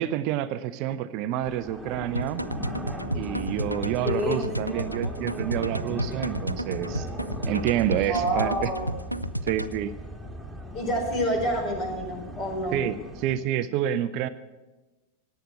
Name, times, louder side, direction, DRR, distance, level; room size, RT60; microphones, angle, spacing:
voice 1, 0.0-2.4 3.1-7.1 7.5-8.7 9.4-9.9 12.7-14.3, right 11 dB, 40° right, 12 dB, 0.6 m, -28 dB
sound 1, 1.4-13.4, equal, ahead, 2.4 m, -38 dB
sound 2, 2.1-9.8, equal, 90° right, 0.4 m, -32 dB
voice 2, 4.0-4.8 8.0-8.9 10.7-12.8, equal, 35° left, 4 dB, 4.3 m, -28 dB
17.0 x 9.1 x 7.8 m, 1.1 s
figure-of-eight pair, 90°, 0 cm